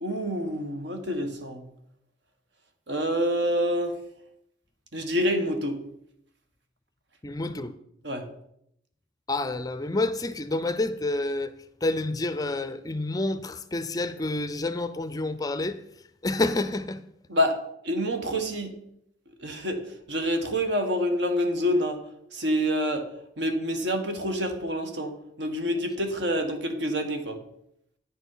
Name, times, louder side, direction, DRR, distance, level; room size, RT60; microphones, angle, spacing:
voice 1, 0.0-1.6 2.9-4.0 4.9-5.8 8.0-8.3 17.3-17.6 17.8-18.8 19.4-22.0 22.3-23.1 23.4-27.4, equal, 65° right, 1.3 m, -27 dB
voice 2, 7.2-7.8 9.3-11.5 11.8-15.8 16.2-17.0, left 2 dB, 20° left, 0.4 m, -28 dB
9.6 x 6.1 x 5.5 m
head